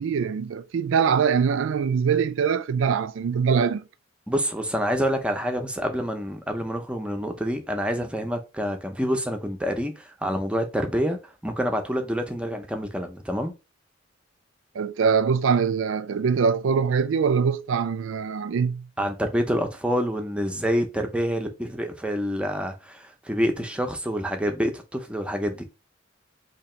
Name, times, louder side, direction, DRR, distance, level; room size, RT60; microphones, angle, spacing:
voice 1, 0.0-3.8 14.8-18.8, right 6 dB, 85° right, 0.4 m, -23 dB
voice 2, 4.3-13.5 19.0-25.6, equal, 5° right, 0.6 m, -27 dB
2.9 x 2.8 x 4.2 m
head